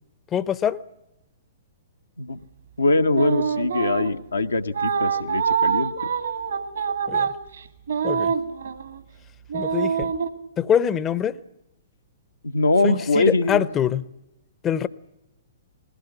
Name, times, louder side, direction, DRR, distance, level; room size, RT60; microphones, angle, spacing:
voice 1, 0.3-0.8 7.1-7.3 8.0-8.3 9.5-10.1 10.6-11.4 12.8-14.1 14.6-14.9, left 9 dB, 20° left, 0.7 m, -24 dB
voice 2, 2.8-5.9 12.4-13.6, left 3 dB, 80° left, 1.1 m, -22 dB
sound 1, 3.1-4.2 4.7-9.0 9.5-10.3, right 6 dB, 70° right, 1.9 m, -25 dB
20.5 x 16.5 x 9.9 m
figure-of-eight pair, 115°, 0 cm